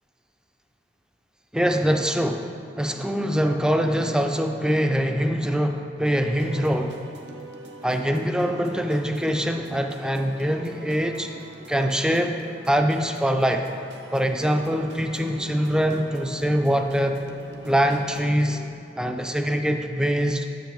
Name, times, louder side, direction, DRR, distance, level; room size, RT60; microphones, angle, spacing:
voice 1, 1.5-7.0 7.8-11.3 11.7-12.4 12.7-13.7 14.1-17.2 17.7-18.6 19.0-20.5, equal, 5° right, 5 dB, 0.3 m, -23 dB
sound 1, 6.3-18.7, right 1 dB, 70° right, 0.6 m, -43 dB
7.4 x 7.0 x 3.1 m, 2.4 s
head